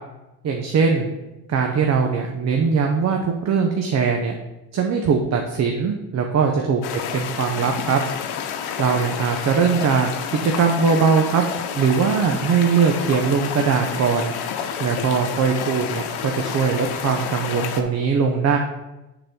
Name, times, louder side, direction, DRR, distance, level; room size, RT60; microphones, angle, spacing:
voice 1, 0.4-1.1 1.5-4.3 4.7-8.0 8.8-11.4 11.7-14.3 14.8-16.0 16.3-18.6, right 5 dB, 45° right, 3 dB, 0.8 m, -20 dB
sound 1, 6.8-17.8, left 8 dB, 80° left, 0.9 m, -30 dB
6.6 x 4.1 x 6.0 m, 0.99 s
cardioid pair, 110°, 39 cm